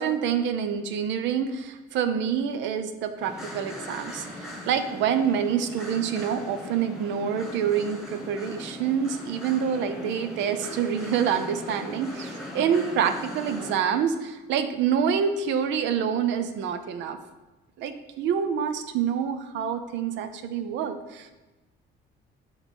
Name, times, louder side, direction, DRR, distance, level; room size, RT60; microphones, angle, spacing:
voice 1, 0.0-17.2 17.8-21.3, right 7 dB, 70° right, 9 dB, 0.6 m, -27 dB
sound 1, 3.2-13.8, left 1 dB, 5° right, 1.4 m, -39 dB
6.4 x 3.1 x 5.3 m, 1.1 s
cardioid pair, 140°, 20 cm